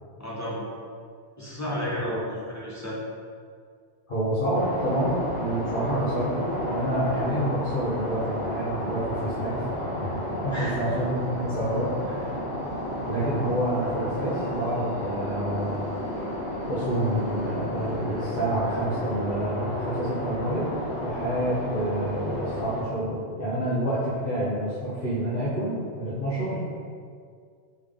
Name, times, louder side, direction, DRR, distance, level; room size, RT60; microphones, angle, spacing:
voice 1, 0.2-0.6 1.4-3.0 10.5-10.7, equal, 15° left, -8 dB, 0.9 m, -32 dB
voice 2, 4.1-9.6 10.0-10.2 10.4-12.4 13.1-15.8 16.7-20.6 21.0-26.6, right 1 dB, 55° left, -11 dB, 1.1 m, -28 dB
sound 1, 4.5-22.8, equal, 80° left, 1.5 m, -32 dB
3.6 x 3.5 x 3.5 m, 2.1 s
omnidirectional pair, 1.1 m